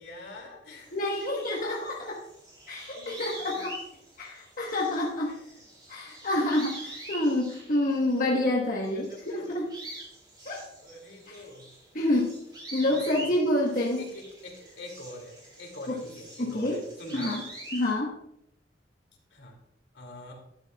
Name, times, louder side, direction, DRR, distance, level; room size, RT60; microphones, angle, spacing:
voice 1, 0.0-1.4 2.9-3.6 5.3-5.7 6.1-6.4 8.9-9.6 10.7-11.7 12.9-13.4 13.8-17.4 19.3-19.5 19.9-20.3, left 1 dB, 75° left, 1 dB, 2.6 m, -45 dB
sound 1, 0.8-8.5 8.8-17.9, right 1 dB, 25° right, 3.2 m, -45 dB
voice 2, 0.9-2.2 2.7-3.7 4.2-5.3 5.9-9.7 10.4-10.6 11.3-11.4 11.9-12.4 12.7-14.1 15.9-16.0 16.4-16.8 17.1-17.4 17.7-18.2, left 1 dB, 50° left, -3 dB, 1.3 m, -28 dB
12.0 x 9.0 x 2.3 m, 0.77 s
head